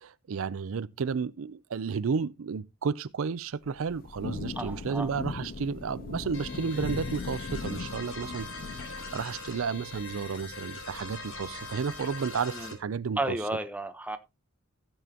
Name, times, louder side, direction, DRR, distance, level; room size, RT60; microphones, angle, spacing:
voice 1, 0.0-8.5 8.8-13.4, right 5 dB, 75° right, 0.5 m, -32 dB
Thunder / Rain, 3.6-12.2, left 4 dB, 45° left, 0.5 m, -40 dB
voice 2, 4.5-5.1 12.5-12.7 13.2-14.2, right 2 dB, 5° right, 0.9 m, -33 dB
sound 1, 6.3-12.7, left 3 dB, 65° left, 3.3 m, -42 dB
16.0 x 7.2 x 2.8 m
head